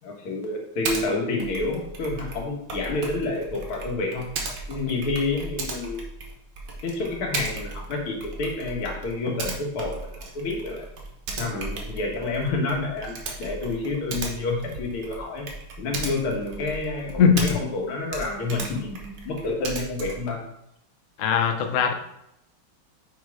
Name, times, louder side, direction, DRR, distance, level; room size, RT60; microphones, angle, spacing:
voice 1, 0.0-4.3 4.7-6.0 6.8-10.9 11.3-15.5 15.8-20.4, left 3 dB, 90° left, 1 dB, 2.3 m, -29 dB
Typing, 0.8-1.1 1.4-17.8 18.1-20.3, right 3 dB, 70° right, 1.8 m, -36 dB
voice 2, 21.2-21.9, left 7 dB, 65° left, 5 dB, 0.7 m, -19 dB
6.1 x 4.6 x 4.7 m, 0.80 s
omnidirectional pair, 2.3 m